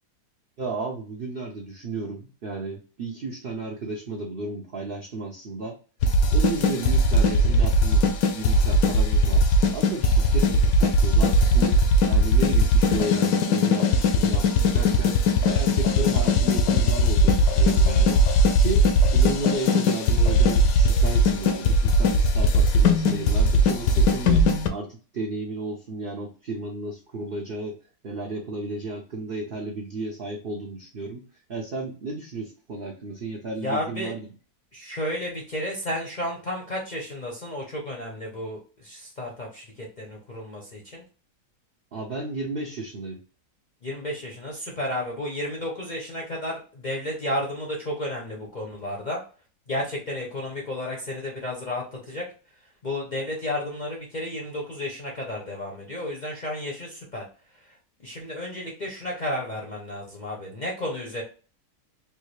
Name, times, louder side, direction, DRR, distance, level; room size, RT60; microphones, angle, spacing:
voice 1, 0.6-5.8 6.3-11.8 12.1-14.5 14.7-15.2 15.4-18.2 18.5-27.8 28.0-31.2 31.5-34.3 41.9-43.2, right 2 dB, 85° right, 1 dB, 0.4 m, -33 dB
sound 1, 6.0-24.7, left 1 dB, 70° left, 0.9 m, -19 dB
voice 2, 33.6-34.1 34.7-41.0 43.8-49.2 49.7-52.2 52.8-57.2 58.0-61.2, left 1 dB, 50° left, -1 dB, 0.5 m, -32 dB
3.4 x 2.4 x 3.1 m, 0.37 s
omnidirectional pair, 1.8 m